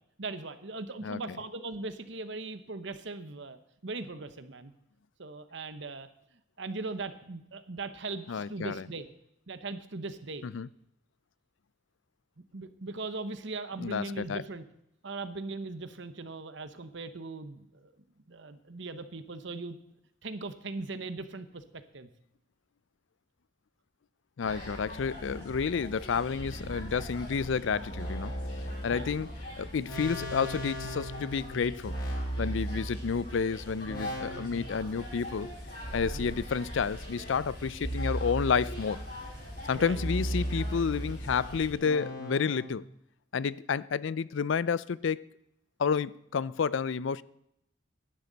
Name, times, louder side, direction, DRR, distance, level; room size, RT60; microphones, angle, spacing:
voice 1, 0.2-3.6 3.8-4.7 5.2-6.1 6.6-9.1 9.5-10.4 12.4-14.6 15.0-17.9 18.3-19.8 20.2-22.1 28.9-29.2 36.1-36.3 39.7-40.1, right 3 dB, 65° right, 1.0 m, -39 dB
voice 2, 8.3-8.8 10.4-10.7 13.8-14.4 24.4-28.3 28.8-29.3 29.6-31.9 32.4-35.5 35.9-39.1 39.7-42.8 43.3-45.3 45.8-47.2, left 6 dB, 70° left, 0.4 m, -30 dB
sound 1, 24.4-41.7, left 1 dB, 50° left, 6.8 m, -43 dB
sound 2, 26.3-33.3 33.8-35.0 35.8-37.0 37.8-39.1 39.8-42.7, right 1 dB, 25° left, 6.7 m, -37 dB
16.5 x 11.0 x 4.1 m
head